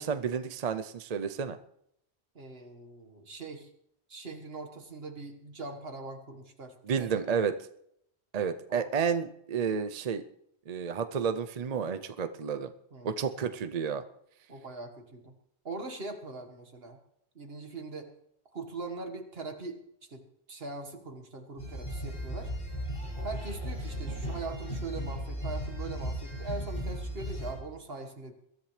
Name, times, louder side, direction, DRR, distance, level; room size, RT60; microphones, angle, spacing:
voice 1, 0.0-1.6 6.8-7.6 8.3-10.2 10.7-12.7 13.0-14.0, right 6 dB, 45° right, 9 dB, 0.6 m, -31 dB
voice 2, 2.4-3.7 4.1-7.2 8.7-8.9 12.9-13.1 14.5-15.3 15.7-17.0 17.4-18.1 18.5-19.8 20.1-20.2 20.5-22.5 23.2-28.3, right 3 dB, 65° right, 5 dB, 1.9 m, -41 dB
sound 1, 21.6-27.5, equal, 55° left, 6.1 m, -36 dB
22.5 x 13.5 x 3.3 m, 0.72 s
omnidirectional pair, 1.1 m